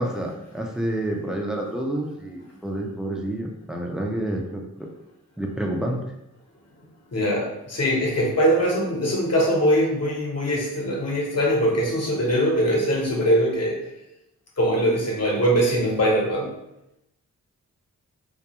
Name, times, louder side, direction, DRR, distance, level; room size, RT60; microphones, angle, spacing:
voice 1, 0.0-4.9 5.4-6.0, right 1 dB, ahead, 0 dB, 0.4 m, -29 dB
voice 2, 7.1-13.8 14.6-16.5, equal, 50° left, -2 dB, 0.9 m, -22 dB
2.3 x 2.2 x 2.8 m, 0.89 s
cardioid pair, 60°, 34 cm